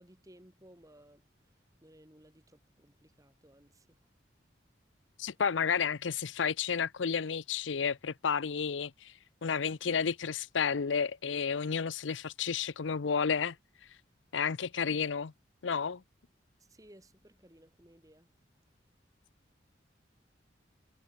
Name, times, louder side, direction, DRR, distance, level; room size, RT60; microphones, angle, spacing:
voice 1, 0.0-4.1 16.6-18.3, right 1 dB, 20° right, 3.4 m, -59 dB
voice 2, 5.2-9.1 9.4-13.6 14.3-15.3 15.6-16.0, left 6 dB, 85° left, 0.6 m, -31 dB
head